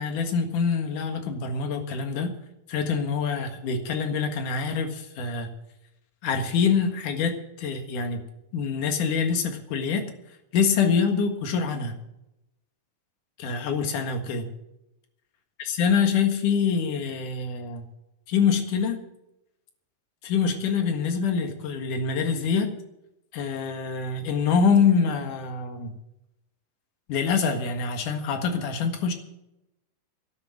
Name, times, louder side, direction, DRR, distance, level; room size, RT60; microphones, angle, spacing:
voice 1, 0.0-2.3 2.7-5.5 6.2-8.2 8.5-10.1 10.5-11.9 13.4-14.5 15.8-17.9 18.3-19.0 20.2-22.8 23.3-26.0 27.1-29.1, left 6 dB, 55° left, 5 dB, 2.5 m, -25 dB
12.0 x 10.5 x 7.6 m, 0.88 s
omnidirectional pair, 5.5 m